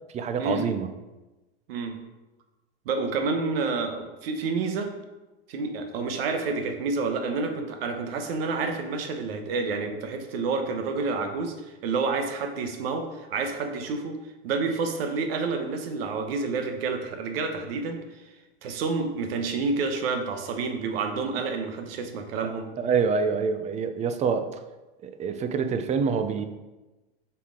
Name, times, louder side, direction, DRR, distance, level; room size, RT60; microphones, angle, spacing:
voice 1, 0.1-0.9 22.8-24.4 25.0-26.5, right 5 dB, 20° right, 8 dB, 0.5 m, -26 dB
voice 2, 2.8-4.9 5.5-11.6 11.8-14.2 14.4-18.0 18.6-22.7, right 4 dB, 70° right, 6 dB, 1.1 m, -29 dB
6.8 x 4.8 x 3.7 m, 1.1 s
hypercardioid pair, 115°, 31 cm